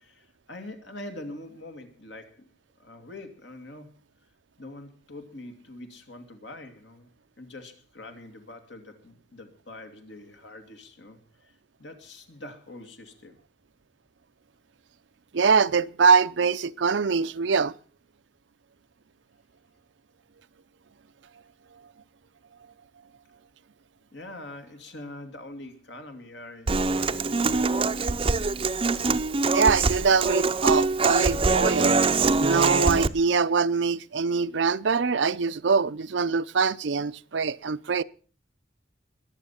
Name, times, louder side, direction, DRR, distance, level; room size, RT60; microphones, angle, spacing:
voice 1, 0.0-2.5 2.8-4.0 4.6-7.1 7.4-13.3 24.1-28.3, left 2 dB, 75° left, 2.5 m, -44 dB
voice 2, 15.3-17.7 29.5-31.9 32.4-38.0, right 5 dB, 85° right, 0.6 m, -23 dB
Human voice / Acoustic guitar, 26.7-33.1, right 3 dB, 30° right, 0.5 m, -23 dB
21.0 x 7.3 x 5.8 m
head